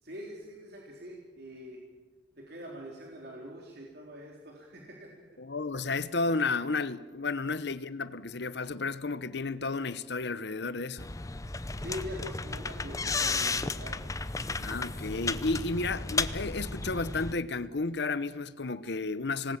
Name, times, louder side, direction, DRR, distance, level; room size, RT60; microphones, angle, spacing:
voice 1, 0.0-1.8 2.4-5.1 11.8-14.0, equal, 60° right, 3.8 m, -43 dB
voice 2, 5.4-11.1 14.6-19.6, left 3 dB, 65° left, 0.9 m, -32 dB
sound 1, 11.0-17.3, left 3 dB, 20° left, 0.7 m, -33 dB
27.0 x 19.5 x 7.4 m
head